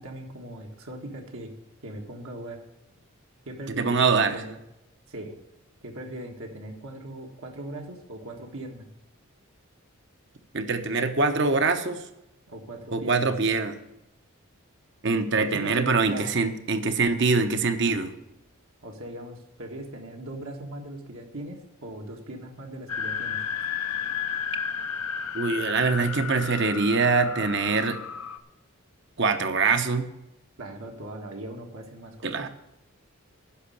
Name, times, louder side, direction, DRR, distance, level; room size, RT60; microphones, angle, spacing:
voice 1, 0.0-1.5 1.8-2.6 3.4-4.6 5.1-5.4 5.8-8.9 12.5-13.5 15.4-16.3 18.8-23.4 30.6-32.5, right 1 dB, 70° right, 1 dB, 1.6 m, -39 dB
voice 2, 3.7-4.4 10.5-12.0 12.9-13.7 15.0-18.1 25.3-28.0 29.2-30.1 32.2-32.5, right 4 dB, 55° right, 8 dB, 1.0 m, -24 dB
sound 1, 22.9-28.4, left 7 dB, 85° left, 0.8 m, -32 dB
10.0 x 6.4 x 8.5 m, 0.90 s
head